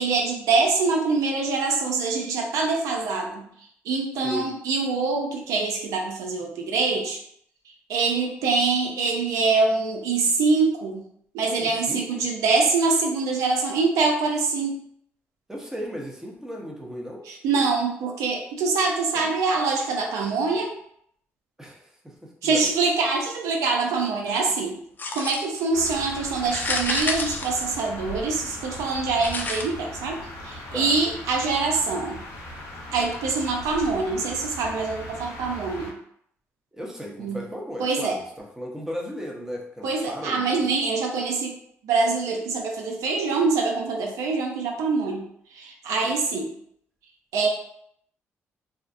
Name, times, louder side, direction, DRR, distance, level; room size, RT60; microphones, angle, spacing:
voice 1, 0.0-3.4 3.9-7.2 7.9-11.0 11.3-14.8 17.4-20.7 22.4-24.7 25.1-30.2 30.4-32.2 32.9-35.9 37.2-37.4 37.8-38.2 39.8-41.5 41.8-45.2 45.6-46.5 47.3-47.5, right 4 dB, 85° right, 1 dB, 0.4 m, -24 dB
voice 2, 4.2-4.5 11.6-12.1 15.5-17.3 19.1-19.3 21.6-22.7 30.7-30.9 36.7-40.7 46.0-46.1, equal, 10° right, -1 dB, 0.7 m, -36 dB
sound 1, 25.0-25.6 26.4-28.2 29.2-29.6, left 3 dB, 35° left, 0.4 m, -29 dB
sound 2, 25.7-35.9, left 1 dB, 80° left, 0.6 m, -39 dB
2.4 x 2.0 x 2.5 m, 0.69 s
supercardioid pair, 70°, 5 cm